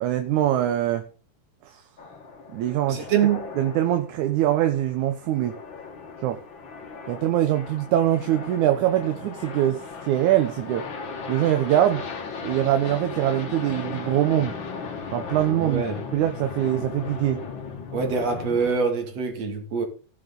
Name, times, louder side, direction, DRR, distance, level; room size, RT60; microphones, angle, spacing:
voice 1, 0.0-1.0 1.7-1.8 2.5-3.1 3.6-5.6 6.2-6.4 7.1-10.9 11.3-12.0 12.4-14.6 15.1-15.8 16.1-17.4, right 12 dB, 75° right, 2.1 m, -23 dB
sound 1, 2.0-18.8, left 5 dB, 45° left, 1.8 m, -37 dB
voice 2, 2.9-3.5 15.6-16.0 17.9-19.9, right 6 dB, 50° right, 3.4 m, -24 dB
16.5 x 7.9 x 4.0 m
omnidirectional pair, 3.8 m